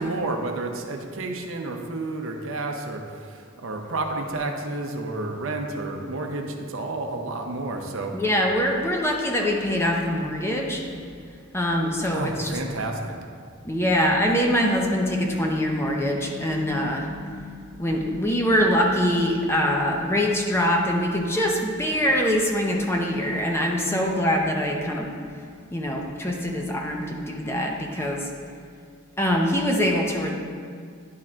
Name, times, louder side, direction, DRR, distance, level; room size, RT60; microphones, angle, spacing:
voice 1, 0.0-8.1 12.1-13.1 28.0-28.1, right 2 dB, 65° right, 3 dB, 0.7 m, -30 dB
voice 2, 8.1-10.8 11.5-12.6 13.6-25.1 25.7-28.3 29.2-30.4, equal, 10° left, 0 dB, 0.7 m, -24 dB
10.5 x 3.7 x 4.3 m, 2.1 s
head